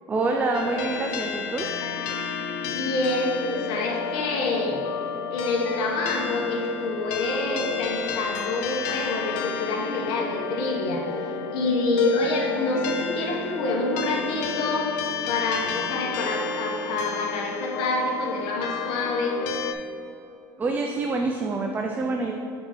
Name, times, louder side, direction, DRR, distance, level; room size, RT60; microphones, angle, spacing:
voice 1, 0.1-1.7 20.6-22.3, right 3 dB, 20° right, 2 dB, 0.4 m, -26 dB
sound 1, 0.5-19.7, left 6 dB, 90° left, 0.5 m, -32 dB
voice 2, 2.6-4.8 5.3-11.1 11.5-14.9 15.3-19.4, left 2 dB, 65° left, -1 dB, 1.2 m, -27 dB
5.2 x 4.1 x 5.0 m, 2.6 s
cardioid pair, 130°, 9 cm